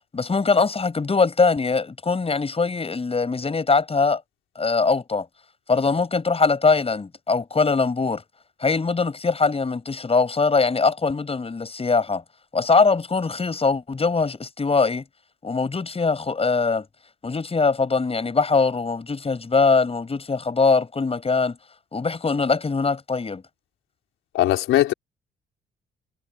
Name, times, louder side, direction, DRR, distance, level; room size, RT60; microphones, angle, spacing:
voice 1, 0.1-4.2 4.6-5.3 5.7-8.2 8.6-12.2 12.5-15.0 15.4-16.9 17.2-21.6 21.9-23.4, left 4 dB, 30° left, 7.6 m, -22 dB
voice 2, 24.3-24.9, left 14 dB, 85° left, 3.9 m, -19 dB
cardioid pair, 90°, 20 cm